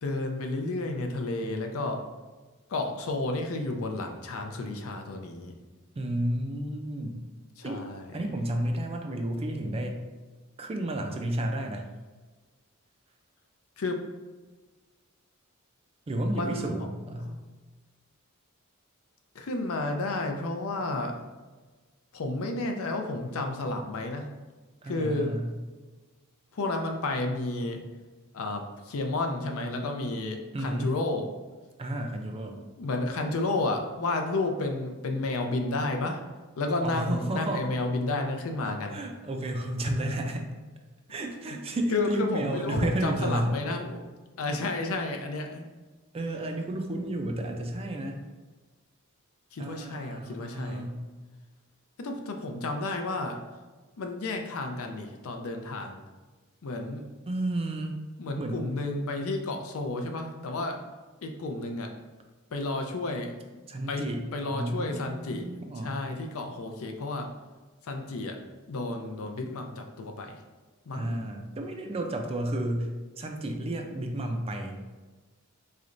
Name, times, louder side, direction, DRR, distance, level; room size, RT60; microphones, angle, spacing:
voice 1, 0.0-2.0 2.7-5.5 7.6-8.3 13.8-14.0 16.3-16.7 17.2-17.4 19.3-21.2 22.1-24.3 24.8-25.3 26.5-27.8 28.3-31.3 32.8-36.2 36.6-39.0 41.5-41.6 41.9-44.0 44.4-45.6 49.5-50.9 52.0-53.4 54.0-56.0 56.6-57.0 58.2-60.8 61.2-61.9 62.5-63.3 63.9-64.1 64.3-67.3 67.8-68.4 68.7-70.4 70.9-71.2, left 2 dB, 70° left, 4 dB, 0.5 m, -31 dB
voice 2, 6.0-7.2 7.6-7.9 8.1-10.0 10.6-11.8 16.1-17.3 24.8-25.5 30.5-30.9 31.8-32.6 36.8-37.7 38.9-40.5 41.1-43.6 46.1-48.3 49.6-51.1 57.3-58.0 58.4-58.7 63.7-64.2 64.5-66.0 70.9-74.8, right 1 dB, 25° right, 4 dB, 0.4 m, -32 dB
3.9 x 3.2 x 2.5 m, 1.3 s
head